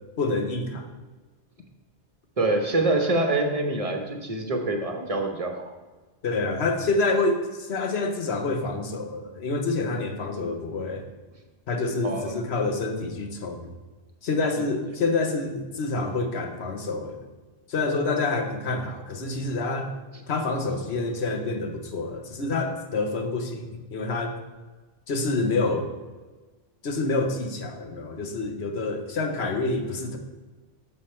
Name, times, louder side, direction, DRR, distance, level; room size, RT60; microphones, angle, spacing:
voice 1, 0.2-0.9 6.2-11.0 11.7-13.7 14.2-17.2 17.7-19.9 20.3-24.3 25.1-25.9 26.8-30.2, left 3 dB, 65° left, 5 dB, 1.2 m, -27 dB
voice 2, 2.4-5.6 12.0-12.4, right 2 dB, 35° right, 4 dB, 0.9 m, -25 dB
7.5 x 6.8 x 4.3 m, 1.3 s
omnidirectional pair, 1.2 m